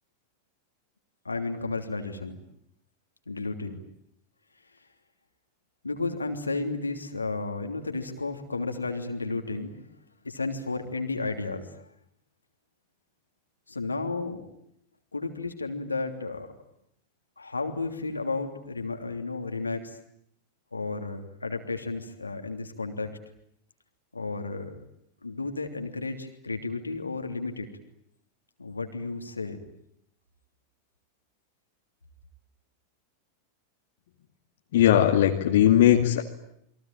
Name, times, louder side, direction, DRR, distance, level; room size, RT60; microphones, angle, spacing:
voice 1, 1.2-2.4 3.3-3.8 5.8-9.8 10.2-11.7 13.7-14.5 15.1-16.5 17.4-20.0 20.7-23.2 24.1-24.8 25.2-27.7 28.6-29.6, left 3 dB, 80° left, 5 dB, 3.1 m, -33 dB
voice 2, 34.7-36.2, left 11 dB, 55° left, 3 dB, 2.4 m, -19 dB
29.5 x 23.0 x 8.9 m, 0.74 s
figure-of-eight pair, 90°, 0 cm